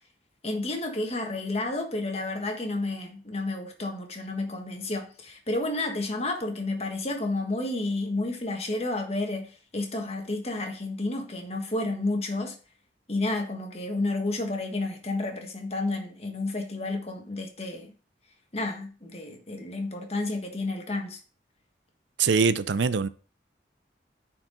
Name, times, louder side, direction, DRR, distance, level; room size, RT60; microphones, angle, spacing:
voice 1, 0.4-12.5 13.1-17.9 18.5-21.2, left 2 dB, 35° left, 1.5 m, -31 dB
voice 2, 22.2-23.1, right 5 dB, 75° right, 0.5 m, -23 dB
9.6 x 4.6 x 3.9 m
head